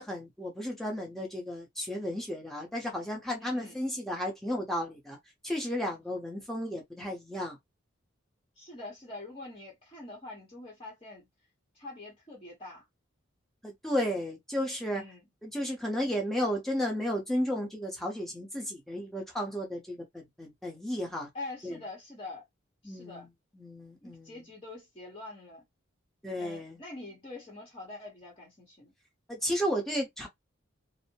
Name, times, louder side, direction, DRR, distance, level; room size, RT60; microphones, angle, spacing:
voice 1, 0.0-5.2 5.4-7.6 13.6-15.0 15.4-21.3 21.6-21.8 22.8-23.3 23.6-24.3 26.2-26.8 29.3-30.3, equal, ahead, 0.8 m, -33 dB
voice 2, 3.4-3.8 8.6-11.3 11.7-12.8 14.9-15.3 21.3-22.4 22.8-23.3 24.0-25.6 26.3-28.9, left 2 dB, 25° left, 0.9 m, -45 dB
2.6 x 2.1 x 2.8 m
head